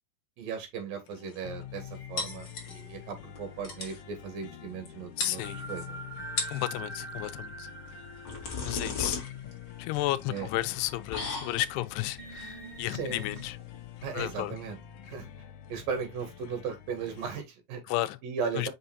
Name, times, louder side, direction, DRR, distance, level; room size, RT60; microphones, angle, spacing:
voice 1, 0.4-6.0 10.3-10.5 12.9-13.3 14.0-14.8 15.0-15.3 15.7-17.8 18.2-18.7, right 6 dB, 60° right, 3.8 m, -37 dB
sound 1, 1.1-17.4, left 10 dB, 70° left, 2.0 m, -46 dB
sound 2, 1.9-3.9 5.4-10.3 10.7-10.8 12.2-13.4, right 3 dB, 10° right, 3.3 m, -45 dB
sound 3, 2.2-3.0 3.4-3.5 3.6-4.0 4.9-5.0 5.2-5.9 6.2-6.7 7.9-14.5, left 4 dB, 45° left, 1.6 m, -37 dB
voice 2, 5.2-5.6 6.5-7.7 8.6-9.2 9.8-13.6 14.1-14.6 17.9-18.2 18.6-18.7, left 16 dB, 90° left, 2.7 m, -32 dB
6.3 x 5.7 x 2.6 m
omnidirectional pair, 4.6 m